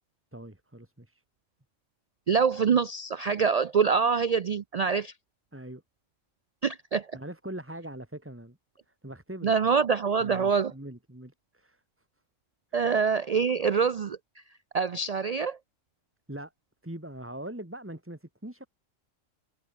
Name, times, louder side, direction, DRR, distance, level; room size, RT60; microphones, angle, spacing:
voice 1, 0.3-1.2 5.5-5.8 7.1-8.6 8.9-9.5 10.2-11.8 12.7-12.9 16.3-16.5 16.8-18.7, right 1 dB, 10° right, 2.2 m, -42 dB
voice 2, 2.3-5.1 6.6-7.1 9.4-10.7 12.7-14.2 14.7-15.6, right 6 dB, 85° right, 0.3 m, -25 dB
omnidirectional pair, 1.3 m